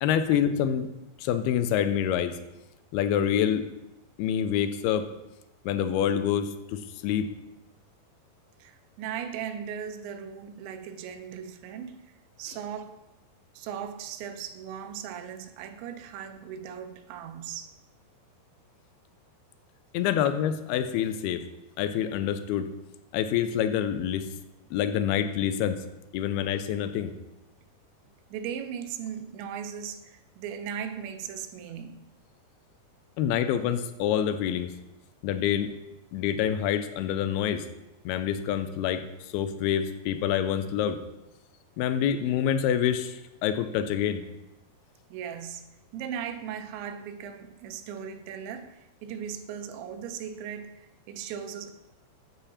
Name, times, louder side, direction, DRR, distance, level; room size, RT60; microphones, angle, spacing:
voice 1, 0.0-0.9 1.2-2.4 2.9-3.7 4.2-5.1 5.7-7.3 19.9-21.4 21.8-22.7 23.1-24.3 24.7-25.8 26.1-27.1 33.2-34.8 35.2-35.7 36.1-37.7 38.1-39.0 39.3-41.0 41.8-44.2, left 9 dB, 80° left, 9 dB, 2.3 m, -26 dB
voice 2, 8.6-12.1 12.4-13.0 13.5-17.7 28.3-32.0 45.1-45.7 45.9-51.7, right 8 dB, 85° right, 9 dB, 3.1 m, -38 dB
10.0 x 5.8 x 7.1 m, 0.95 s
omnidirectional pair, 5.1 m